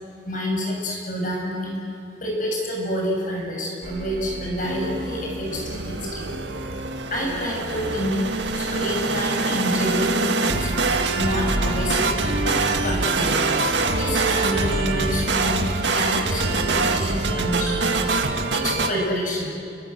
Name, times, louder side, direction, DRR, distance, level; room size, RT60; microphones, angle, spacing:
voice 1, 0.2-1.8 2.2-6.2 7.1-8.3 8.5-10.7 11.1-12.6 12.8-13.3 13.9-15.5 15.9-18.0 18.5-19.5, equal, 45° left, -1 dB, 7.9 m, -28 dB
sound 1, 3.8-18.9, right 3 dB, 80° right, 1.9 m, -24 dB
29.5 x 24.5 x 8.0 m, 2.5 s
head